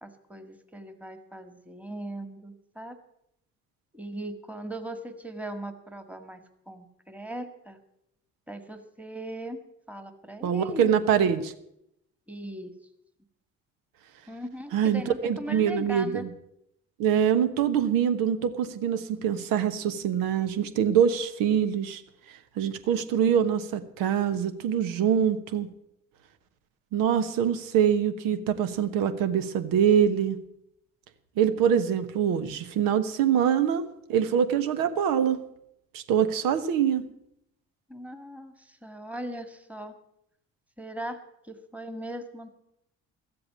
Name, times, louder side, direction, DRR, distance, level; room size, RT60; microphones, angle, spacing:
voice 1, 0.0-3.0 3.9-7.8 8.5-9.6 9.9-10.9 12.3-12.8 14.3-16.3 37.9-40.0 40.8-42.5, right 1 dB, 5° right, 8 dB, 1.8 m, -39 dB
voice 2, 10.4-11.5 14.7-16.3 17.0-22.0 22.3-25.7 26.9-30.4 31.4-35.4 35.9-37.0, right 8 dB, 75° right, 10 dB, 1.2 m, -24 dB
13.5 x 7.8 x 8.7 m, 0.79 s
hypercardioid pair, 50°, 35 cm